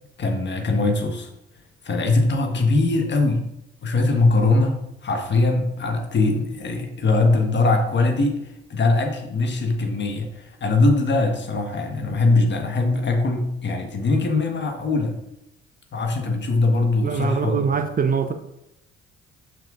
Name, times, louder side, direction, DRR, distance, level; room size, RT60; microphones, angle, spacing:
voice 1, 0.2-1.3 1.8-3.4 3.8-8.4 8.7-15.2 15.9-17.6, left 3 dB, 35° left, 3 dB, 1.3 m, -21 dB
voice 2, 17.0-18.3, right 6 dB, 25° right, 7 dB, 0.6 m, -23 dB
6.4 x 6.3 x 2.5 m, 0.84 s
figure-of-eight pair, 50°, 32 cm